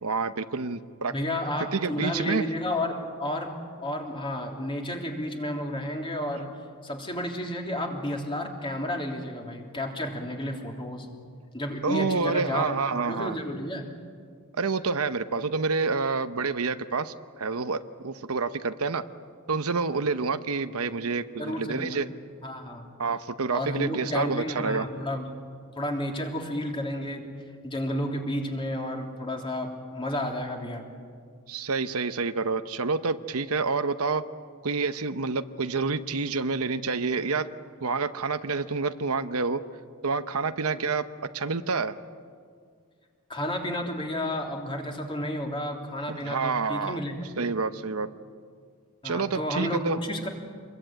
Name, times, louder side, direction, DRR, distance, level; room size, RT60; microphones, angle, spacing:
voice 1, 0.0-1.1 1.7-2.4 11.8-13.4 14.6-19.0 19.5-22.1 23.0-24.9 31.5-34.2 34.6-37.5 37.8-39.6 40.0-41.0 41.3-42.0 46.1-47.0 47.4-48.1 49.0-50.0, right 4 dB, 70° right, 11 dB, 0.9 m, -28 dB
voice 2, 1.1-11.1 11.5-13.9 21.4-22.0 22.4-22.9 23.5-25.4 25.7-27.3 27.6-30.8 43.3-47.3 49.0-50.3, left 1 dB, 25° left, 2 dB, 3.3 m, -32 dB
27.5 x 22.0 x 9.0 m, 2.1 s
head